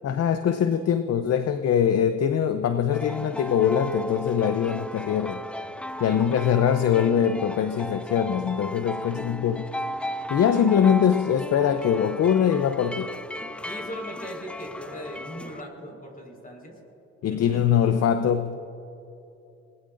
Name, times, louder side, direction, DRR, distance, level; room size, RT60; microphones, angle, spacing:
voice 1, 0.0-5.4 6.0-9.7 10.3-13.1 17.2-18.6, left 8 dB, 55° left, 10 dB, 0.7 m, -22 dB
sound 1, 2.9-15.6, left 1 dB, 5° left, 0.4 m, -36 dB
voice 2, 6.0-6.7 13.6-16.8 17.3-17.6, equal, 30° left, 1 dB, 4.9 m, -39 dB
27.0 x 19.5 x 2.6 m, 2.9 s
cardioid pair, 90°, 30 cm